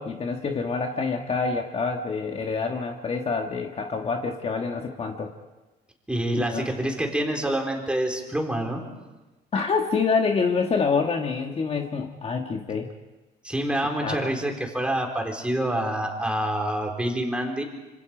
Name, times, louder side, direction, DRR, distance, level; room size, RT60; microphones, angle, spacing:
voice 1, 0.0-5.3 6.4-6.7 9.5-12.9 14.0-14.3, left 5 dB, 35° left, 3 dB, 1.6 m, -26 dB
voice 2, 6.1-8.8 13.4-17.6, right 1 dB, 5° right, 2 dB, 4.1 m, -27 dB
26.5 x 25.5 x 5.1 m, 1.1 s
cardioid pair, 110°, 17 cm